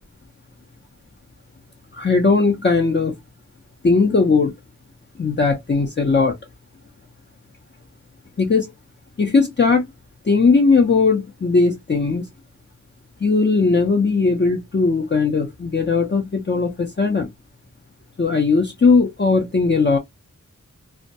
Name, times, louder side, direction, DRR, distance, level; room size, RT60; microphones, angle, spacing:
voice 1, 1.9-3.2 3.8-4.5 5.2-6.4 8.4-8.7 9.2-9.9 10.2-12.3 13.2-17.3 18.2-20.0, left 4 dB, 35° left, 0.6 m, -18 dB
2.2 x 2.1 x 2.7 m
wide cardioid pair, 45°, 32 cm